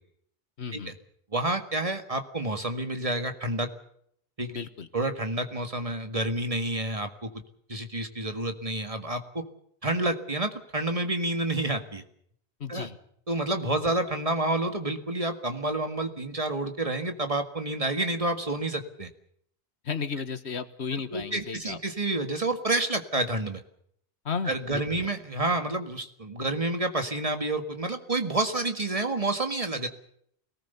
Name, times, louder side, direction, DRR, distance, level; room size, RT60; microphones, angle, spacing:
voice 1, 0.6-1.0 4.5-4.9 12.6-13.0 19.9-21.8 24.3-25.1, left 6 dB, 80° left, 11 dB, 1.6 m, -34 dB
voice 2, 1.3-3.7 4.4-4.5 4.9-7.3 7.7-9.4 9.8-12.0 12.7-12.9 13.3-19.1 21.1-23.6 24.4-29.9, right 2 dB, 30° right, 7 dB, 1.8 m, -29 dB
25.0 x 18.5 x 6.8 m, 0.68 s
omnidirectional pair, 1.1 m